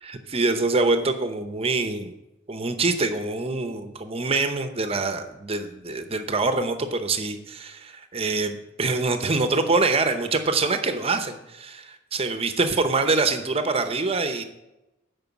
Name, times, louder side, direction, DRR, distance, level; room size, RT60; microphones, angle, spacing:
voice 1, 0.0-2.1 2.5-14.4, right 3 dB, 30° right, 8 dB, 0.7 m, -25 dB
9.3 x 5.3 x 7.0 m, 0.94 s
head